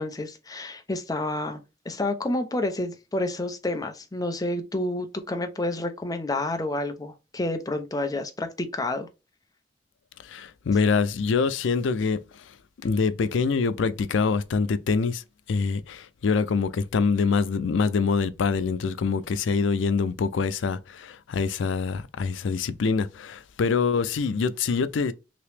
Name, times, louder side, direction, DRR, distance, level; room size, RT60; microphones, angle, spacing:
voice 1, 0.0-9.1, left 2 dB, 20° left, 0.6 m, -29 dB
voice 2, 10.2-12.6 12.8-25.1, left 5 dB, 85° left, 0.4 m, -25 dB
3.0 x 2.9 x 3.2 m
head